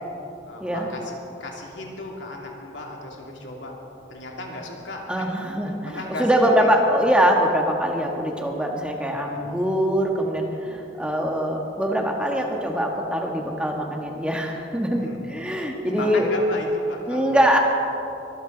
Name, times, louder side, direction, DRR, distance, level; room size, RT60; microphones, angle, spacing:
voice 1, 0.5-1.1 1.4-3.8 4.1-5.3 5.9-6.7 9.2-9.6 14.9-15.2 15.6-17.6, left 2 dB, 90° left, -1 dB, 2.8 m, -35 dB
voice 2, 5.1-16.3 17.1-17.6, equal, 5° right, 1 dB, 1.5 m, -23 dB
23.0 x 14.5 x 4.0 m, 2.9 s
head